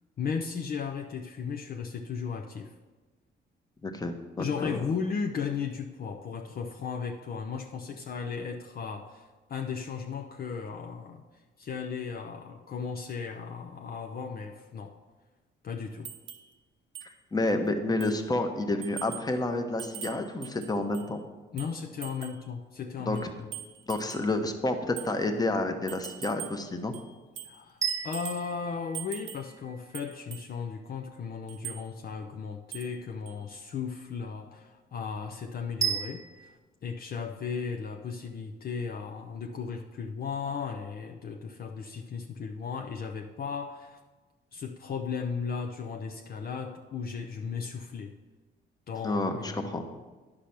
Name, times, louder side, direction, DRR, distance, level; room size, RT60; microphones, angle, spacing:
voice 1, 0.2-2.7 4.4-11.2 11.6-15.0 15.6-16.1 21.5-23.5 27.4-36.6 36.8-44.0 44.5-48.1 48.9-50.0, left 6 dB, 50° left, 3 dB, 0.6 m, -36 dB
voice 2, 3.8-4.8 17.0-21.2 23.0-23.3 23.9-26.9 49.0-49.8, left 2 dB, 20° left, 5 dB, 1.0 m, -30 dB
sound 1, 16.1-16.5 17.0-17.1 17.5-17.6 18.0-18.3 18.8-19.3 19.8-21.1 21.6-22.4 23.2-24.3 25.0-25.1 25.9-26.7 26.9-27.6 27.9-28.5 28.9-29.5 29.9-30.5 31.5-31.8 32.7-33.0 33.3-33.4, right 11 dB, 75° right, 0.9 m, -42 dB
sound 2, 27.8-30.0 35.8-36.6, right 6 dB, 15° right, 0.9 m, -34 dB
10.5 x 5.0 x 5.9 m, 1.3 s
cardioid pair, 90°, 20 cm